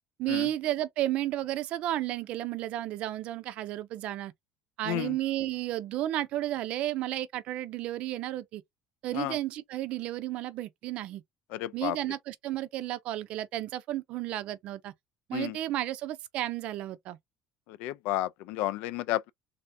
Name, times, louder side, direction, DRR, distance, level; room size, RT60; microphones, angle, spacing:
voice 1, 0.2-4.3 4.8-8.6 9.0-11.2 11.7-14.9 15.3-17.2, right 14 dB, 45° right, 0.5 m, -32 dB
voice 2, 4.9-5.2 9.1-9.4 11.5-12.0 15.3-15.6 17.7-19.3, left 15 dB, 60° left, 0.3 m, -32 dB
3.5 x 3.4 x 2.5 m
cardioid pair, 180°, 3 cm